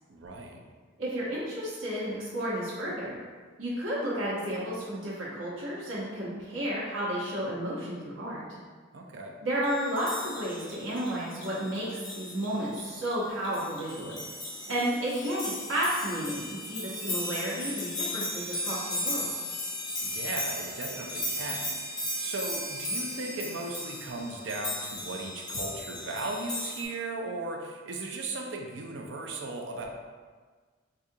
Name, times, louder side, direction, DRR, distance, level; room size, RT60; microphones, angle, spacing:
voice 1, 0.1-0.6 8.9-9.4 20.0-29.9, right 2 dB, 60° right, 1 dB, 0.5 m, -37 dB
voice 2, 1.0-3.2 3.6-8.4 9.4-11.9 12.2-14.2 14.7-19.3, equal, 85° right, -7 dB, 0.9 m, -32 dB
Mechanisms, 6.4-6.5 9.5-15.1, equal, 70° left, 1.1 m, -51 dB
sound 1, 9.7-26.8, left 1 dB, 20° left, 0.7 m, -36 dB
4.8 x 2.4 x 2.7 m, 1.5 s
head